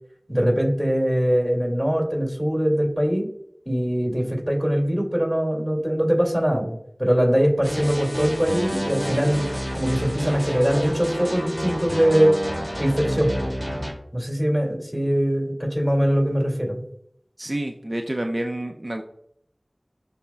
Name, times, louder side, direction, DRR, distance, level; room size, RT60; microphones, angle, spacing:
voice 1, 0.3-3.3 3.7-12.3 12.8-13.5 14.1-16.8, equal, 5° right, -1 dB, 2.5 m, -22 dB
sound 1, 7.6-13.9, equal, 15° left, 2.4 m, -29 dB
voice 2, 17.4-19.0, right 1 dB, 40° right, 4 dB, 0.5 m, -28 dB
11.5 x 4.1 x 2.3 m, 0.70 s
wide cardioid pair, 45°, 0 cm